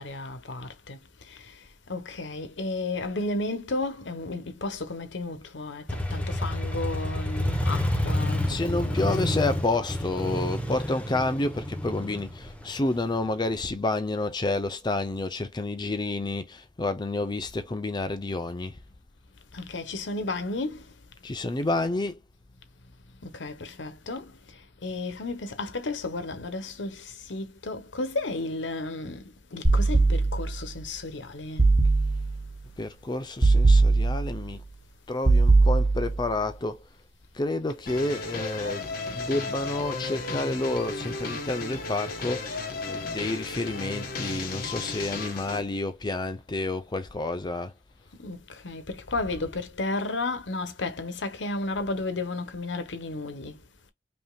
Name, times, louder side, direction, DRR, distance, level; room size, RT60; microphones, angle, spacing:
voice 1, 0.0-9.4 19.5-20.9 23.2-31.7 48.2-53.6, left 2 dB, 90° left, 1.0 m, -33 dB
Motorcycle, 5.9-13.5, left 1 dB, 10° left, 0.9 m, -29 dB
voice 2, 8.4-18.8 21.2-22.2 32.8-34.6 35.1-36.8 37.3-47.7, left 2 dB, 25° left, 0.5 m, -29 dB
sound 1, 29.6-30.7 31.6-32.5 33.4-34.5 35.2-36.3, right 3 dB, 35° right, 0.9 m, -20 dB
sound 2, 37.9-45.6, left 3 dB, 55° left, 1.4 m, -34 dB
5.3 x 2.8 x 2.3 m
head